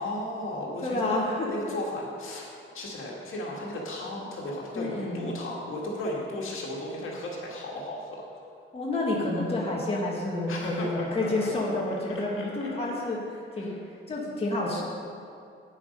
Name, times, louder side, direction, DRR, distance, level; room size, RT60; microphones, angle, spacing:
voice 1, 0.0-1.2 1.5-2.5 2.7-8.3 10.5-11.5 12.1-12.7 13.6-13.8, left 1 dB, 75° left, -2 dB, 1.9 m, -35 dB
voice 2, 0.8-1.5 4.7-5.2 8.7-13.2 13.6-13.8 14.1-14.8, left 2 dB, 30° left, -4 dB, 1.7 m, -29 dB
9.6 x 8.2 x 5.3 m, 2.4 s
wide cardioid pair, 160°, 21 cm